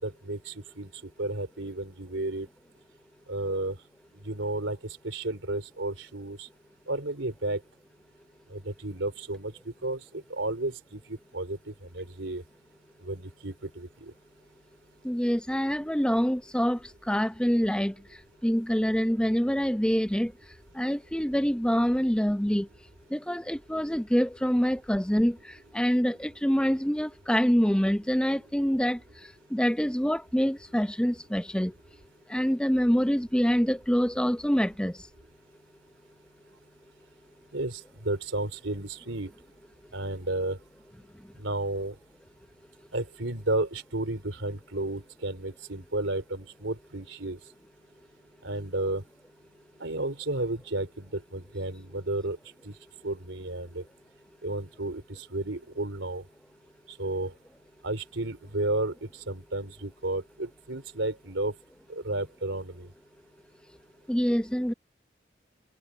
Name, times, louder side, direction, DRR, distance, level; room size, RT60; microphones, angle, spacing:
voice 1, 0.0-2.5 3.3-3.8 4.2-6.5 6.9-7.6 8.5-12.4 13.0-14.1 37.5-39.3 39.9-40.6 41.4-41.9 42.9-47.4 48.4-49.0 49.8-52.4 52.6-52.7 53.0-53.8 54.4-56.2 56.9-57.3 57.8-61.5 61.9-62.9, right 2 dB, 80° right, 3.4 m, -32 dB
voice 2, 15.0-16.8 17.1-17.9 18.4-20.3 20.7-22.7 23.1-25.4 25.7-29.0 29.5-31.7 32.3-35.0 64.1-64.7, equal, 5° left, 0.7 m, -25 dB
head